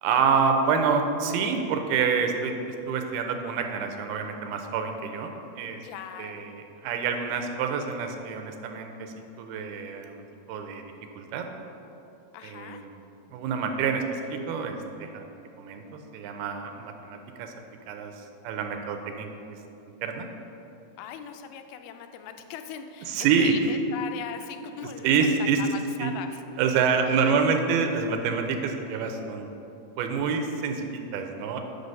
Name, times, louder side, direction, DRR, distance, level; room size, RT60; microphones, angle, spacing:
voice 1, 0.0-5.8 6.2-10.9 11.2-11.4 12.4-12.9 13.3-17.5 17.9-19.3 20.0-20.3 23.1-23.5 25.0-25.6 26.0-26.1 26.6-29.5 30.0-31.6, right 6 dB, 90° right, 5 dB, 2.6 m, -27 dB
voice 2, 5.8-6.5 12.3-12.8 21.0-25.1 25.4-26.3 27.0-27.3, left 9 dB, 90° left, 7 dB, 2.4 m, -39 dB
6.5 x 6.2 x 5.3 m, 2.9 s
omnidirectional pair, 4.3 m